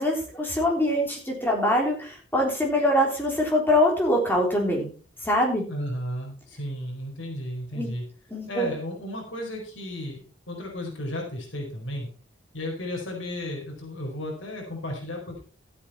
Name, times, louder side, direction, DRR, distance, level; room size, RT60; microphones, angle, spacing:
voice 1, 0.0-4.9 5.2-5.6 7.7-7.9 8.3-8.7, left 1 dB, 10° left, 0 dB, 3.5 m, -23 dB
voice 2, 5.7-8.0 8.5-12.1 12.5-15.4, left 1 dB, 85° left, 0 dB, 4.6 m, -34 dB
13.0 x 8.6 x 4.4 m, 0.39 s
head